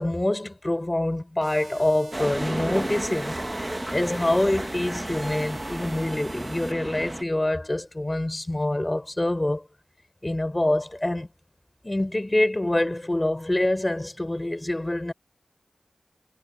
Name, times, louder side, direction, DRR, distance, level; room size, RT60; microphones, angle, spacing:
voice 1, 0.0-3.4 3.9-9.7 10.2-11.3 11.8-15.1, left 1 dB, 25° left, 4.1 m, -25 dB
sound 1, 1.4-6.7, right 4 dB, 90° right, 6.0 m, -49 dB
sound 2, 2.1-7.2, right 1 dB, 20° right, 1.4 m, -32 dB
cardioid pair, 40°, 0 cm